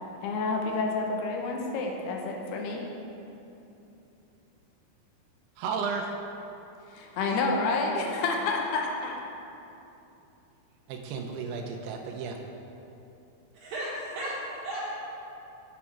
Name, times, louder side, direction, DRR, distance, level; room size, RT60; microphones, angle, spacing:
voice 1, 0.2-2.9 6.9-9.2, left 3 dB, 80° left, 1 dB, 2.9 m, -29 dB
voice 2, 5.6-6.1 10.9-12.4, right 5 dB, 80° right, 3 dB, 2.8 m, -33 dB
voice 3, 13.5-15.1, right 1 dB, 65° right, -9 dB, 3.0 m, -35 dB
8.4 x 6.2 x 6.0 m, 2.9 s
omnidirectional pair, 4.7 m